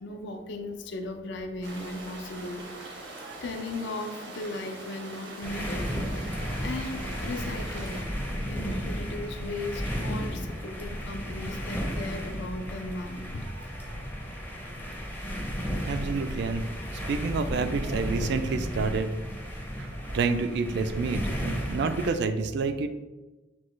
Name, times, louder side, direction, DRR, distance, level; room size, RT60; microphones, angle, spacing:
voice 1, 0.0-3.1 3.4-5.9 6.6-8.1 8.4-13.4, left 2 dB, 65° left, 6 dB, 0.5 m, -37 dB
sound 1, 1.6-8.0, right 2 dB, 90° right, 0.9 m, -43 dB
sound 2, 5.4-22.1, equal, 10° left, 0.5 m, -34 dB
voice 2, 15.9-16.7 16.9-19.1 19.8-22.9, right 4 dB, 65° right, 9 dB, 0.3 m, -29 dB
6.0 x 2.2 x 3.1 m, 1.1 s
head